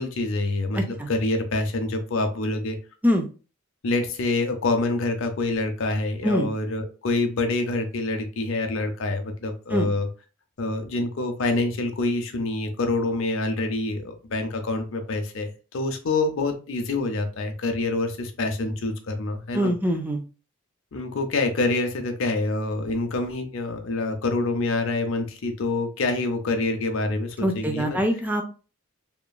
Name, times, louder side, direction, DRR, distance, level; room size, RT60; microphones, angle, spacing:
voice 1, 0.0-2.8 3.8-10.1 10.6-19.7 20.9-28.0, left 2 dB, 60° left, 5 dB, 0.5 m, -26 dB
voice 2, 0.7-1.1 3.0-3.3 6.2-6.5 9.7-9.9 19.5-20.2 27.4-28.4, equal, 10° right, 5 dB, 0.3 m, -24 dB
2.9 x 2.4 x 2.2 m, 0.35 s
head